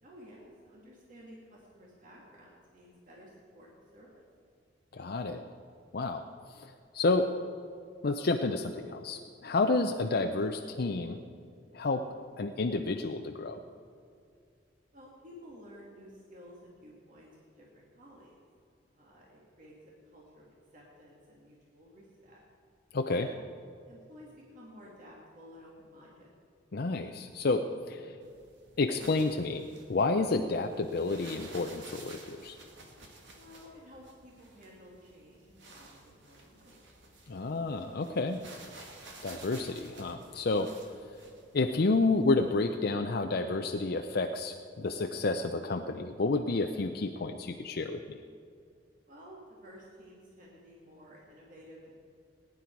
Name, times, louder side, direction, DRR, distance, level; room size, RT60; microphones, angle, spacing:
voice 1, 0.0-4.2 14.9-18.4 18.9-19.7 20.1-20.5 20.7-22.4 23.1-23.4 23.9-26.3 33.3-36.8 49.1-52.0, equal, 45° right, -3 dB, 2.3 m, -53 dB
voice 2, 4.9-5.4 5.9-6.2 6.6-7.3 8.0-11.2 11.7-12.0 12.4-13.6 22.9-23.3 26.7-28.0 28.8-32.6 37.3-38.4 39.2-40.7 41.5-48.2, left 3 dB, 60° left, 5 dB, 0.6 m, -30 dB
sound 1, 28.2-42.8, right 2 dB, 80° right, 2.1 m, -53 dB
19.0 x 10.0 x 4.6 m, 2.4 s
head